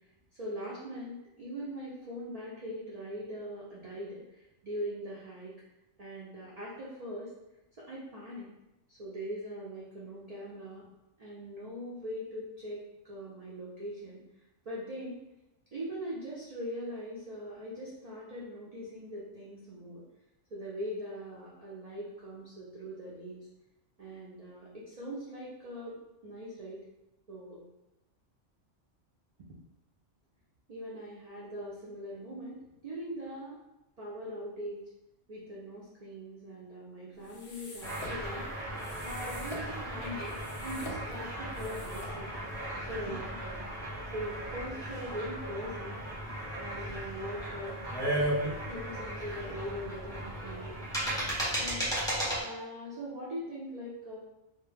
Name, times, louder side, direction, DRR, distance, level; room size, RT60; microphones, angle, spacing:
voice 1, 0.3-5.5 6.0-7.3 7.8-8.5 8.9-10.9 11.2-14.2 14.7-15.2 15.7-20.0 20.5-23.5 24.0-26.8 27.3-27.6 29.4-29.6 30.7-33.6 34.0-34.8 35.3-38.5 39.0-42.3 42.9-43.6 44.1-46.0 46.6-47.8 48.7-50.9 51.5-52.1 52.4-54.2, equal, 85° right, -6 dB, 0.3 m, -41 dB
sound 1, 37.2-42.6, left 2 dB, 65° left, 0.7 m, -46 dB
sound 2, 37.8-52.4, right 1 dB, 5° left, 0.3 m, -36 dB
2.1 x 2.1 x 3.1 m, 0.95 s
omnidirectional pair, 1.3 m